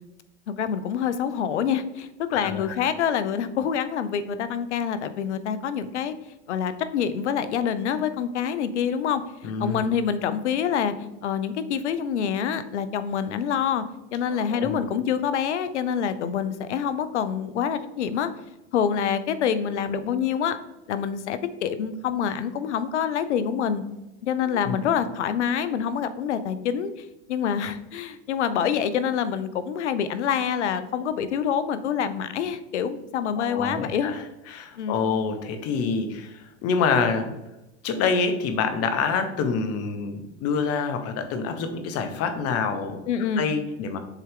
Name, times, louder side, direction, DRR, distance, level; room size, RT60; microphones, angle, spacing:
voice 1, 0.5-6.1 6.5-13.8 14.1-18.3 18.7-20.6 20.9-23.8 24.2-34.1 34.8-35.0 43.1-43.5, left 8 dB, 85° left, 12 dB, 0.7 m, -26 dB
voice 2, 2.3-2.9 9.4-9.9 14.3-14.8 24.4-24.9 33.4-37.3 37.8-43.0 43.4-44.0, left 5 dB, 45° left, 8 dB, 1.1 m, -27 dB
7.1 x 4.4 x 3.6 m, 0.96 s
hypercardioid pair, 105°, 34 cm